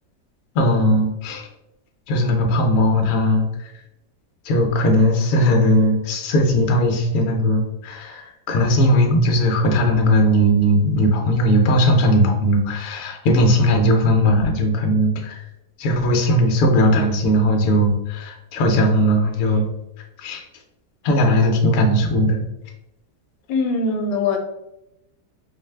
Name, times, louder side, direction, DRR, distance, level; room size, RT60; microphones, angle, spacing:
voice 1, 0.5-1.4 2.1-3.5 4.4-15.4 15.8-19.7 20.2-20.4 21.0-22.4, equal, 60° left, 2 dB, 0.9 m, -18 dB
voice 2, 23.5-24.4, left 3 dB, 80° left, 4 dB, 1.2 m, -21 dB
4.7 x 2.1 x 3.2 m, 0.87 s
omnidirectional pair, 1.9 m